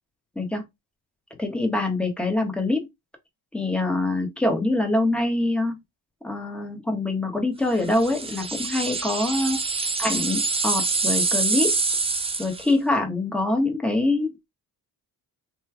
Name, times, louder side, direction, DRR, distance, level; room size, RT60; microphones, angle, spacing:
voice 1, 1.4-2.9 3.5-5.8 6.2-9.6 10.0-11.8 12.4-14.4, left 2 dB, 5° left, 1.0 m, -24 dB
sound 1, 7.9-12.7, right 3 dB, 15° right, 0.4 m, -26 dB
3.1 x 2.2 x 3.4 m
cardioid pair, 90°, 43 cm